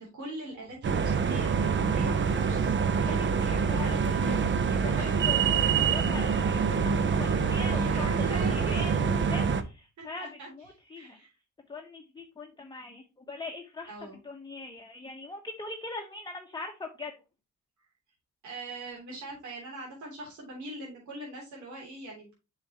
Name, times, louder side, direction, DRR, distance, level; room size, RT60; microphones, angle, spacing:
voice 1, 0.0-3.3 4.9-5.4 7.7-8.8 10.2-10.5 10.9-11.3 13.9-14.2 18.4-22.3, right 2 dB, 75° right, -3 dB, 3.2 m, -41 dB
sound 1, 0.8-9.6, right 6 dB, 40° right, 0.8 m, -26 dB
voice 2, 3.1-4.4 4.6-11.2 11.7-13.9 14.2-17.1, left 3 dB, 15° left, 2 dB, 1.1 m, -41 dB
7.5 x 5.9 x 3.0 m, 0.28 s
cardioid pair, 90°, 30 cm